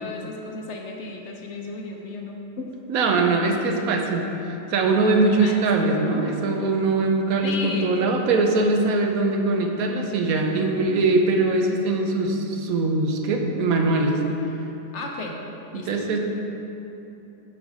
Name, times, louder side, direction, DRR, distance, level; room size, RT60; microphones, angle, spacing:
voice 1, 0.0-2.7 5.4-5.6 7.4-7.9 14.9-15.4 15.7-16.1, left 3 dB, 60° left, 1 dB, 0.9 m, -34 dB
voice 2, 2.9-4.3 4.7-14.2 15.7-16.2, right 3 dB, 80° right, 3 dB, 1.1 m, -22 dB
7.1 x 5.3 x 4.9 m, 3.0 s
omnidirectional pair, 1.5 m